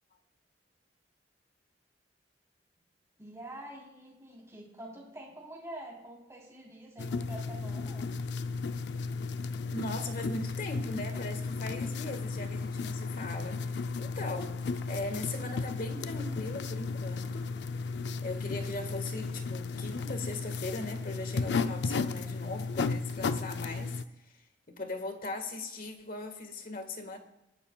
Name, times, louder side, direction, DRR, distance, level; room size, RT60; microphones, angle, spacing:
voice 1, 3.2-8.1, right 1 dB, 15° right, -2 dB, 3.4 m, -46 dB
sound 1, 7.0-24.0, left 4 dB, 70° left, 0.5 m, -34 dB
voice 2, 9.7-14.6 14.9-17.5 18.2-27.2, left 2 dB, 50° left, 6 dB, 1.5 m, -39 dB
20.0 x 11.0 x 2.3 m, 0.93 s
head